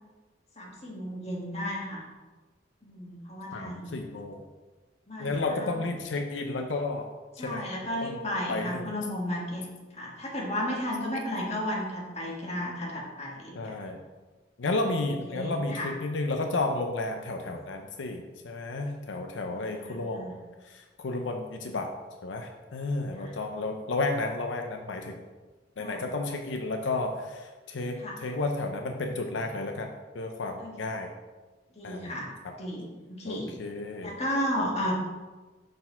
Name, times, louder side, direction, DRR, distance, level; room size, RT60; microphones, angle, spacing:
voice 1, 0.6-2.0 2.8-3.9 5.1-5.7 7.4-9.7 9.9-13.8 15.3-15.9 19.5-20.3 23.2-23.3 25.8-26.1 28.0-28.2 30.6-30.9 31.7-32.3 32.6-33.5 34.0-34.9, left 1 dB, 35° left, -3 dB, 1.6 m, -34 dB
voice 2, 3.5-4.4 5.2-7.1 7.4-7.6 8.0-8.2 8.5-8.9 13.5-14.0 14.6-20.3 20.6-21.9 22.2-25.2 25.8-31.1 31.8-32.1 33.3-34.1, left 2 dB, 90° left, 4 dB, 0.6 m, -32 dB
6.5 x 4.2 x 5.6 m, 1.3 s
head